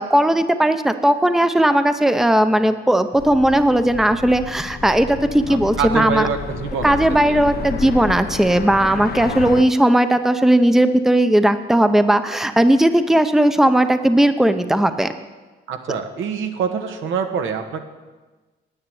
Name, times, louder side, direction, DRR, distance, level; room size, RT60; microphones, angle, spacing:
voice 1, 0.0-6.3 6.8-15.1, right 1 dB, ahead, 9 dB, 0.7 m, -17 dB
sound 1, 3.2-9.6, left 6 dB, 50° left, 0.9 m, -31 dB
voice 2, 5.5-7.6 15.7-17.8, right 6 dB, 80° right, 5 dB, 1.5 m, -25 dB
9.7 x 9.5 x 8.7 m, 1.3 s
cardioid pair, 90°, 20 cm